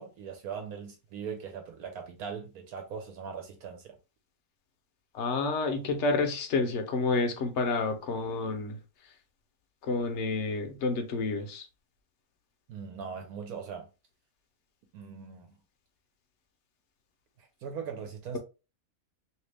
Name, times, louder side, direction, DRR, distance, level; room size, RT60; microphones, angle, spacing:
voice 1, 0.0-4.0 12.7-13.9 14.9-15.5 17.4-18.4, right 6 dB, 75° right, 1.1 m, -40 dB
voice 2, 5.1-8.8 9.8-11.7, left 3 dB, 55° left, 0.9 m, -29 dB
3.0 x 2.8 x 3.3 m
omnidirectional pair, 1.6 m